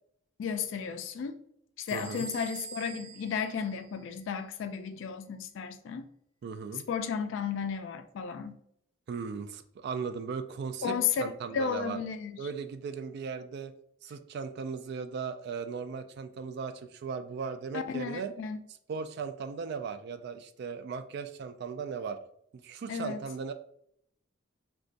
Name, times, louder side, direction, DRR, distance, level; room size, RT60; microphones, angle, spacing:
voice 1, 0.4-1.4 1.8-6.1 6.9-8.6 10.8-12.5 17.7-18.6 22.9-23.2, left 6 dB, 70° left, 0.3 m, -33 dB
Bell / Door, 1.9-4.4, right 2 dB, 25° left, 0.7 m, -45 dB
voice 2, 1.9-2.3 6.4-6.8 9.1-12.0 12.4-13.7 14.0-18.3 18.9-22.2 22.5-23.5, right 5 dB, 60° right, 0.3 m, -37 dB
3.9 x 2.3 x 2.5 m
head